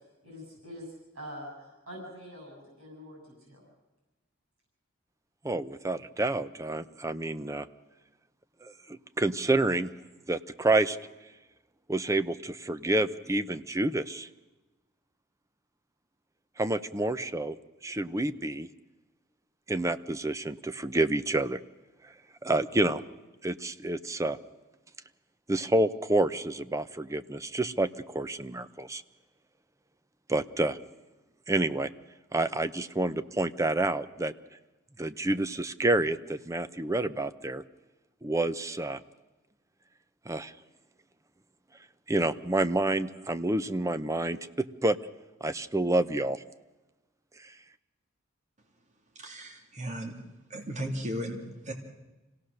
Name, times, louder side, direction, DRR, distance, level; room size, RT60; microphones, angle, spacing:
voice 1, 0.2-3.6, equal, 80° right, 0 dB, 7.2 m, -45 dB
voice 2, 5.4-7.7 8.6-9.9 10.3-11.0 11.9-14.3 16.6-17.6 17.8-18.7 19.7-21.6 22.4-23.0 23.4-24.4 25.5-29.0 30.3-30.8 31.5-31.9 32.3-34.3 35.0-37.6 38.2-39.0 40.3-40.5 42.1-45.0 45.4-46.4, right 2 dB, 15° right, 12 dB, 0.6 m, -28 dB
voice 3, 49.1-50.2 50.5-51.7, equal, 35° right, 1 dB, 2.5 m, -36 dB
26.0 x 17.5 x 6.6 m, 1.1 s
head